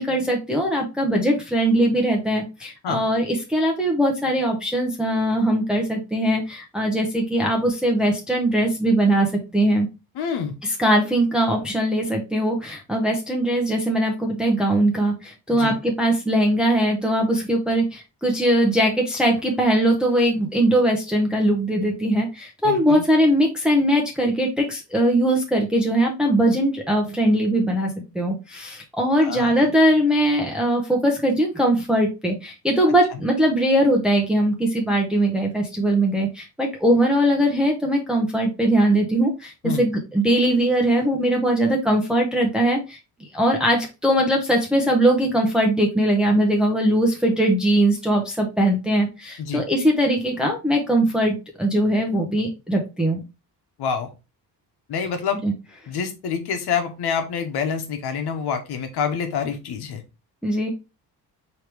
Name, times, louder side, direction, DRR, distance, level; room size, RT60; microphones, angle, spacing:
voice 1, 0.0-9.3 9.5-9.9 10.6-43.0 43.3-53.2 55.4-55.5 60.4-60.7, right 1 dB, ahead, 0 dB, 0.8 m, -21 dB
voice 2, 10.1-10.6 15.5-15.8 22.6-23.0 29.2-29.7 39.6-39.8 49.4-49.6 53.8-54.1 54.9-55.4 55.9-60.0, left 6 dB, 90° left, 6 dB, 1.1 m, -27 dB
4.6 x 3.2 x 3.3 m, 0.27 s
cardioid pair, 145°, 38 cm